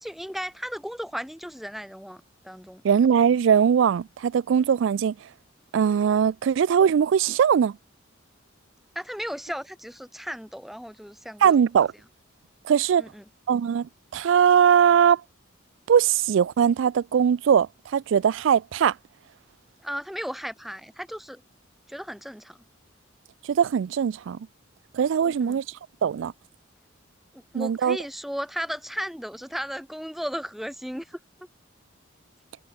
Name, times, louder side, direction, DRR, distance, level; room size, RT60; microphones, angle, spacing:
voice 1, 0.0-2.8 8.9-11.6 13.0-13.2 19.8-21.4 21.9-22.6 25.3-25.6 27.3-31.2, equal, ahead, 1.1 m, -35 dB
voice 2, 2.8-5.1 5.7-7.8 11.4-11.9 12.7-13.0 13.5-15.2 15.9-18.9 23.5-24.4 24.9-25.6 26.0-26.3 27.5-28.0, right 8 dB, 70° right, 0.3 m, -20 dB
head